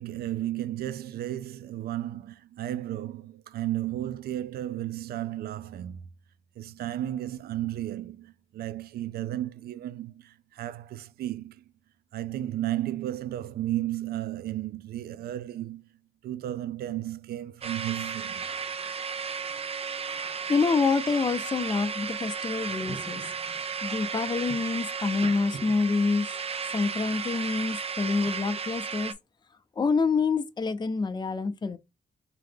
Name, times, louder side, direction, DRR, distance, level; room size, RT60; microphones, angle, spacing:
voice 1, 0.0-6.1 6.6-11.6 12.1-15.9 16.2-18.5, right 13 dB, 90° right, 0.4 m, -33 dB
sound 1, 17.6-29.1, right 6 dB, 40° right, 0.6 m, -34 dB
voice 2, 20.5-23.2 23.8-26.3 26.7-29.1 29.8-31.8, left 4 dB, 30° left, 0.6 m, -27 dB
3.7 x 2.9 x 3.5 m
cardioid pair, 80°, 16 cm